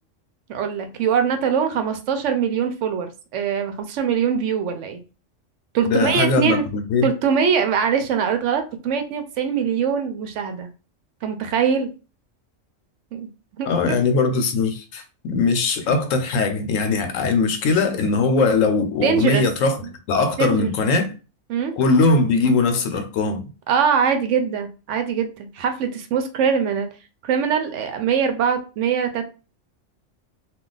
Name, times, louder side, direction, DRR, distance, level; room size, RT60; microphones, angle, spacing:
voice 1, 0.5-5.0 5.7-6.6 7.0-10.7 11.2-11.9 13.1-13.3 13.6-13.7 19.0-19.5 19.8-19.9 20.4-20.7 21.5-21.7 23.7-26.9 27.2-29.2, right 7 dB, 70° right, 0.9 m, -22 dB
voice 2, 5.8-7.1 13.7-21.1 21.8-23.4, left 3 dB, 80° left, 1.0 m, -20 dB
2.3 x 2.3 x 3.8 m
omnidirectional pair, 1.3 m